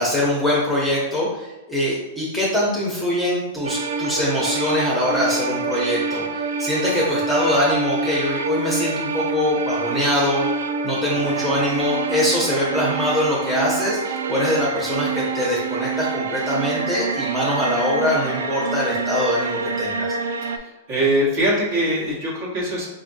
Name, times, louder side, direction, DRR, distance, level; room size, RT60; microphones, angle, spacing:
voice 1, 0.0-20.1, left 1 dB, 5° left, -6 dB, 0.8 m, -23 dB
sound 1, 3.6-20.6, right 4 dB, 85° right, 0.3 m, -26 dB
voice 2, 20.5-22.9, right 1 dB, 50° right, -6 dB, 1.2 m, -22 dB
4.5 x 2.5 x 2.6 m, 1.0 s
hypercardioid pair, 140°, 0 cm